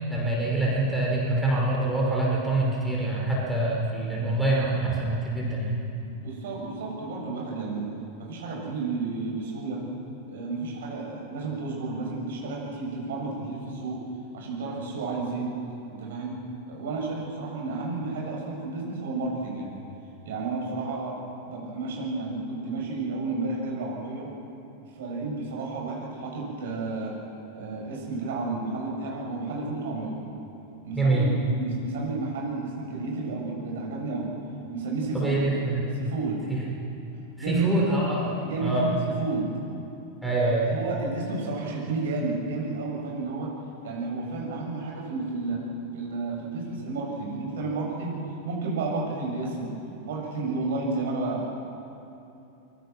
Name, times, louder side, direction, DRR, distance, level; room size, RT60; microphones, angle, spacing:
voice 1, 0.1-5.8 30.9-31.3 35.1-35.8 36.5-36.6 37.4-38.3 38.6-38.9 40.2-40.7, right 2 dB, ahead, -5 dB, 5.7 m, -25 dB
voice 2, 6.2-7.9 8.2-9.8 10.3-14.0 14.3-15.5 15.9-16.4 16.7-19.8 20.2-21.2 21.4-24.3 24.9-27.2 27.5-30.2 30.8-34.3 34.7-35.4 35.9-36.5 37.4-37.9 38.2-39.5 40.7-43.5 43.8-45.6 45.9-48.2 48.4-49.7 50.0-51.5, right 3 dB, 60° right, -2 dB, 8.0 m, -31 dB
24.5 x 24.0 x 6.3 m, 2.8 s
figure-of-eight pair, 90°, 0 cm